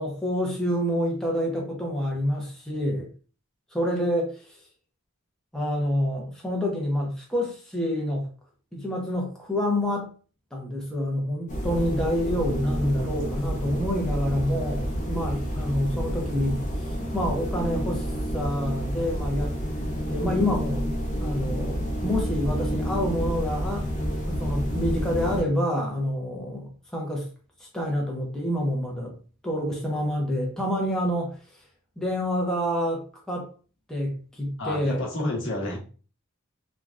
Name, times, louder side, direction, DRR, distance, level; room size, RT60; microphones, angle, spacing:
voice 1, 0.0-3.1 3.7-4.4 5.5-8.3 8.7-10.1 10.5-19.6 20.1-20.8 21.2-23.9 24.3-27.3 27.7-29.1 29.4-31.4 32.0-33.5 33.9-35.0, equal, 5° left, 0.6 m, -27 dB
sound 1, 11.5-25.4, equal, 40° left, 0.7 m, -29 dB
voice 2, 34.6-35.8, left 1 dB, 65° left, 0.9 m, -30 dB
3.3 x 2.3 x 2.4 m
head